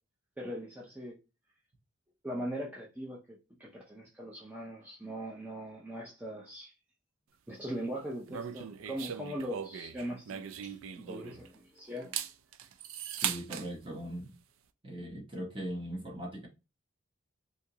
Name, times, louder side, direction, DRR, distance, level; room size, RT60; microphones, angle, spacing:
voice 1, 0.4-1.1 2.2-6.7 7.5-12.2, equal, 10° right, 0.6 m, -40 dB
sound 1, 8.3-11.5 12.0-13.7, right 9 dB, 75° right, 0.3 m, -39 dB
voice 2, 13.2-14.3 14.8-16.5, right 1 dB, 25° right, 1.0 m, -39 dB
3.4 x 2.8 x 2.8 m
head